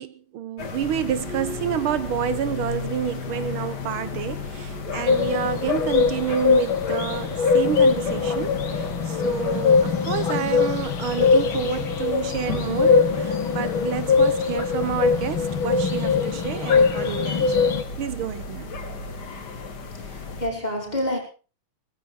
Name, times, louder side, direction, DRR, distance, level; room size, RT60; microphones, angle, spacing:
voice 1, 0.0-18.7, right 9 dB, 80° right, 1.8 m, -29 dB
sound 1, 0.6-20.5, left 4 dB, 55° left, 2.3 m, -34 dB
sound 2, 5.1-17.8, left 5 dB, 70° left, 2.6 m, -22 dB
voice 2, 20.0-21.2, left 1 dB, 20° left, 5.2 m, -28 dB
19.0 x 15.0 x 4.4 m
omnidirectional pair, 2.3 m